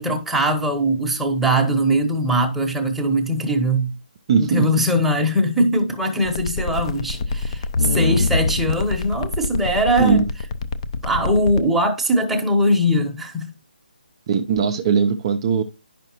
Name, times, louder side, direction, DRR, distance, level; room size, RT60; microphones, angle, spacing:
voice 1, 0.0-3.9 4.4-10.2 11.0-13.5, equal, 5° right, 1.0 m, -21 dB
voice 2, 4.3-4.7 10.0-10.2 14.3-15.6, right 6 dB, 30° right, 0.6 m, -19 dB
sound 1, 6.3-11.6, left 3 dB, 35° left, 0.6 m, -24 dB
9.8 x 5.8 x 3.0 m
figure-of-eight pair, 150°, 5 cm